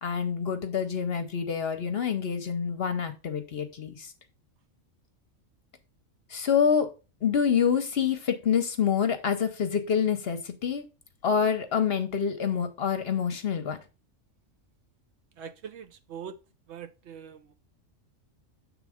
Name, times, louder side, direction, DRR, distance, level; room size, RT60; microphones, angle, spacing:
voice 1, 0.0-4.1 6.3-6.9 7.2-10.8 11.2-13.8, left 7 dB, 55° left, 0.9 m, -27 dB
voice 2, 15.4-16.4 16.7-17.5, right 7 dB, 65° right, 0.8 m, -42 dB
7.2 x 3.5 x 4.9 m
omnidirectional pair, 1.3 m